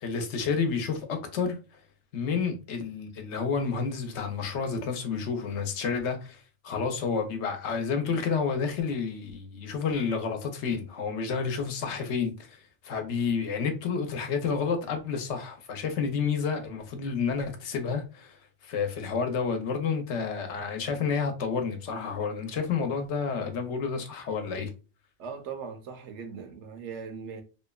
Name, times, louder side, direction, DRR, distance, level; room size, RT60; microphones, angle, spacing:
voice 1, 0.0-1.6 2.1-24.7, left 5 dB, 75° left, 0.9 m, -30 dB
voice 2, 25.2-27.4, right 6 dB, 80° right, 0.9 m, -39 dB
2.8 x 2.1 x 2.2 m
omnidirectional pair, 1.2 m